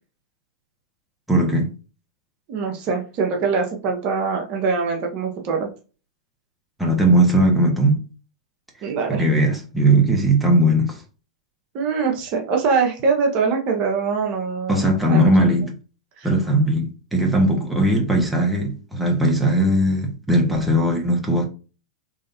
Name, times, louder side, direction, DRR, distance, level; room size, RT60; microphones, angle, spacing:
voice 1, 1.3-1.7 6.8-8.0 9.1-11.0 14.7-15.7 16.2-21.4, right 1 dB, 5° right, 1.0 m, -18 dB
voice 2, 2.5-5.7 8.8-9.2 11.7-15.3 16.2-16.3 17.1-17.2, right 5 dB, 35° right, 0.9 m, -23 dB
3.7 x 3.2 x 2.7 m
figure-of-eight pair, 100°, 3 cm